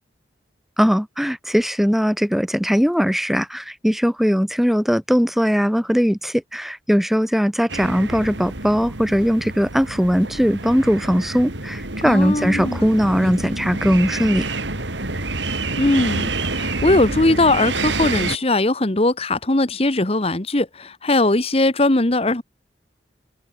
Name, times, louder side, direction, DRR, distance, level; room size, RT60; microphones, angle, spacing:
voice 1, 0.8-14.5, equal, ahead, 1.2 m, -19 dB
sound 1, 7.7-18.4, right 3 dB, 90° right, 4.3 m, -28 dB
voice 2, 12.0-12.8 13.2-13.3 15.8-22.4, left 2 dB, 35° left, 1.4 m, -20 dB
head